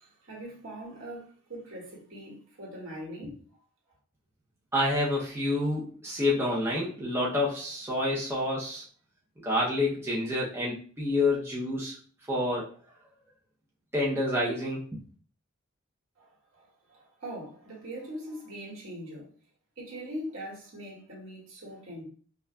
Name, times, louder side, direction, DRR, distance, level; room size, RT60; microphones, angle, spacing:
voice 1, 0.0-3.4 16.2-19.3 19.8-22.0, equal, 65° right, 1.7 m, -42 dB
voice 2, 4.7-8.8 9.4-11.9 12.3-12.7 13.9-15.0, left 1 dB, 10° right, 0.6 m, -28 dB
5.5 x 2.5 x 2.3 m
head